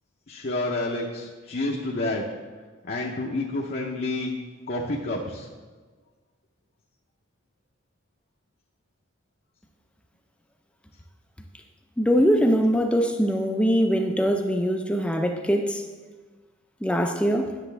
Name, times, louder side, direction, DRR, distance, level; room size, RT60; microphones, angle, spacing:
voice 1, 0.3-2.2 2.8-4.3 4.7-5.5, left 2 dB, 45° left, -2 dB, 0.7 m, -29 dB
voice 2, 12.0-15.8 16.8-17.5, equal, 5° left, 4 dB, 0.4 m, -22 dB
10.5 x 6.9 x 3.3 m, 1.4 s
head